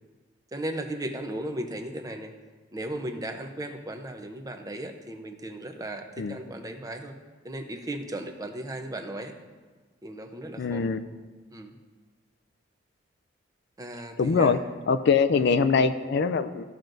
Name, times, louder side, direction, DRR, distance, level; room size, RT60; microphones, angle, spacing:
voice 1, 0.5-2.3 2.7-7.1 7.4-9.3 10.0-10.9 11.5-11.8 13.8-14.6 15.3-15.5, right 1 dB, 20° right, 5 dB, 0.6 m, -36 dB
voice 2, 10.6-11.0 14.2-14.6 14.9-16.6, left 5 dB, 60° left, 12 dB, 0.4 m, -23 dB
14.0 x 6.0 x 2.6 m, 1.4 s
head